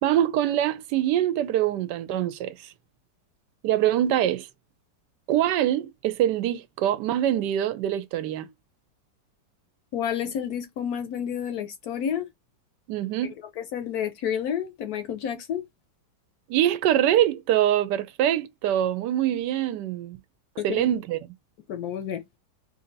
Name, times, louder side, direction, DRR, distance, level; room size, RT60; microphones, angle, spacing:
voice 1, 0.0-2.7 3.6-4.5 5.3-8.5 12.9-13.3 16.5-20.2 20.6-21.3, right 11 dB, 75° right, 1.1 m, -24 dB
voice 2, 9.9-12.3 13.6-15.6 20.6-20.9 21.7-22.2, left 9 dB, 70° left, 1.0 m, -30 dB
3.3 x 2.7 x 3.8 m
omnidirectional pair, 1.9 m